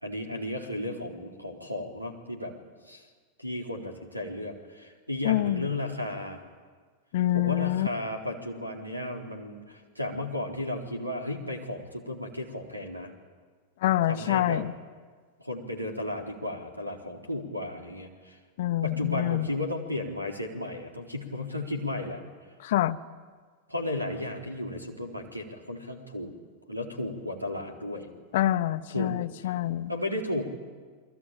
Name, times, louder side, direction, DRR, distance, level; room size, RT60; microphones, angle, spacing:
voice 1, 0.0-2.5 2.9-3.0 3.4-6.4 7.3-13.1 14.1-14.6 15.4-18.4 18.8-22.2 23.7-26.3 26.7-28.1 28.9-29.2 29.4-29.5 29.9-30.4, left 1 dB, 90° right, 3 dB, 4.0 m, -34 dB
voice 2, 5.2-5.7 7.1-7.9 13.8-14.7 18.6-19.5 22.6-23.0 28.3-29.9, left 14 dB, 55° left, 10 dB, 0.9 m, -26 dB
30.0 x 22.5 x 9.0 m, 1.5 s
figure-of-eight pair, 90°, 0 cm